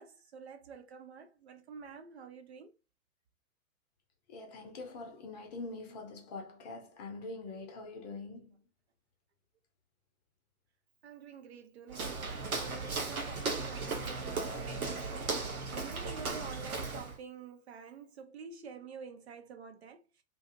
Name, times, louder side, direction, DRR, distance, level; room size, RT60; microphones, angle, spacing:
voice 1, 0.0-2.7 11.0-20.0, right 6 dB, 50° right, 0.5 m, -49 dB
voice 2, 4.3-8.6, left 3 dB, 30° left, 0.6 m, -44 dB
Walk footsteps, 11.9-17.2, right 3 dB, 75° right, 0.9 m, -36 dB
2.6 x 2.4 x 2.6 m
figure-of-eight pair, 110°, 44 cm